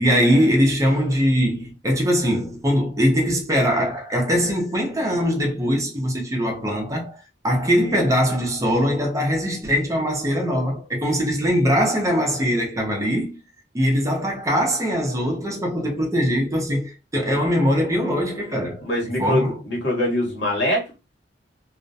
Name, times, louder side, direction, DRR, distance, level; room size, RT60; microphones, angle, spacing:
voice 1, 0.0-13.4 13.7-19.6, equal, 20° right, 0.6 m, -21 dB
voice 2, 18.8-21.0, left 1 dB, 75° left, 1.2 m, -23 dB
2.4 x 2.1 x 2.5 m
head